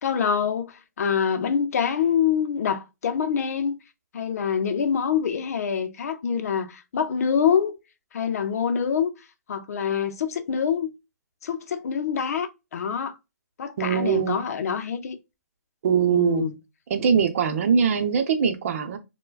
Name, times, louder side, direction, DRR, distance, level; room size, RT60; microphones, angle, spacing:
voice 1, 0.0-3.8 4.1-7.8 8.1-9.1 9.5-10.9 11.4-13.2 13.6-15.2 16.1-16.6, left 7 dB, 65° left, 0.6 m, -25 dB
voice 2, 13.8-14.4 15.8-16.5 16.9-19.0, right 7 dB, 55° right, 0.7 m, -22 dB
4.5 x 2.2 x 2.4 m
hypercardioid pair, 155°, 9 cm